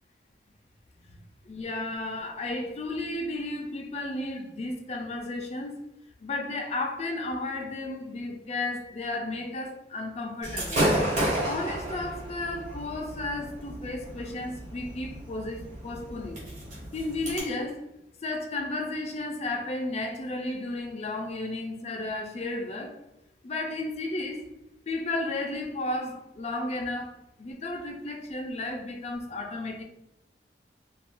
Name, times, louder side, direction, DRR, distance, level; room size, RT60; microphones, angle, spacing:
voice 1, 1.4-5.7 6.2-10.9 11.4-16.4 16.9-17.8 18.2-22.9 23.4-24.5 24.9-27.1 27.4-29.8, left 2 dB, 35° left, 2 dB, 0.4 m, -33 dB
Gunshot gunfire / Fireworks, 10.4-17.4, right 1 dB, 45° right, 1.3 m, -32 dB
2.5 x 2.3 x 3.5 m, 0.88 s
head